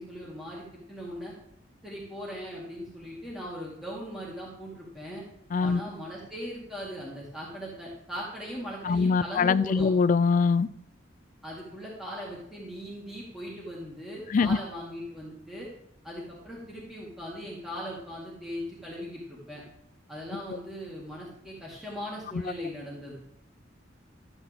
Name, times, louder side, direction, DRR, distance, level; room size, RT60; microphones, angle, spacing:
voice 1, 0.0-1.3 1.8-5.2 5.6-9.9 11.4-15.7 16.0-19.6 20.1-23.2, equal, ahead, -5 dB, 2.1 m, -39 dB
voice 2, 5.5-5.8 8.8-10.7 14.3-14.6 20.5-20.6, left 5 dB, 45° left, 16 dB, 0.3 m, -23 dB
13.0 x 8.0 x 3.5 m, 0.75 s
head